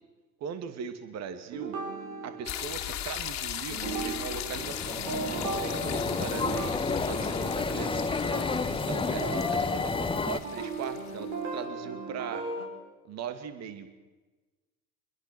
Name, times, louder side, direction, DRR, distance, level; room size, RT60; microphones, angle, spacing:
voice 1, 0.4-1.8 2.2-7.9 8.4-12.5 13.0-13.9, right 7 dB, 35° right, 10 dB, 2.6 m, -40 dB
sound 1, 1.5-3.3 3.7-12.7, right 4 dB, 50° right, 6.3 m, -37 dB
sound 2, 2.5-11.3, left 11 dB, 40° left, 2.6 m, -38 dB
sound 3, 4.5-10.4, left 4 dB, 10° left, 1.3 m, -30 dB
25.5 x 21.5 x 6.2 m, 1.2 s
figure-of-eight pair, 75°, 45 cm